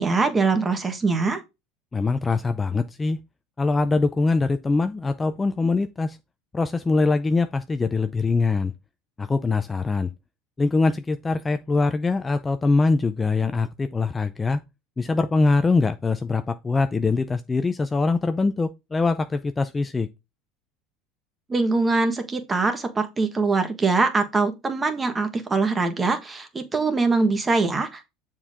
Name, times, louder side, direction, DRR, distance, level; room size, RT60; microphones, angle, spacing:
voice 1, 0.0-1.4 21.5-28.1, right 3 dB, 20° right, 1.5 m, -23 dB
voice 2, 1.9-3.2 3.6-6.2 6.5-8.7 9.2-10.1 10.6-14.6 15.0-20.1, left 3 dB, 15° left, 0.5 m, -23 dB
6.9 x 4.5 x 3.7 m
supercardioid pair, 115°, 0 cm